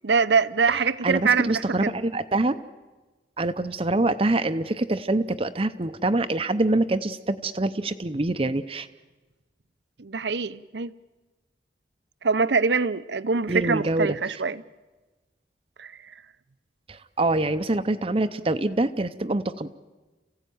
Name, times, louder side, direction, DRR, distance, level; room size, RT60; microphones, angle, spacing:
voice 1, 0.0-1.9 10.0-10.9 12.2-14.6 15.8-16.1, right 5 dB, 70° right, 0.7 m, -24 dB
voice 2, 0.7-2.6 3.4-8.9 13.5-14.2 16.9-19.8, right 2 dB, 30° right, 0.7 m, -25 dB
29.0 x 16.0 x 9.3 m
head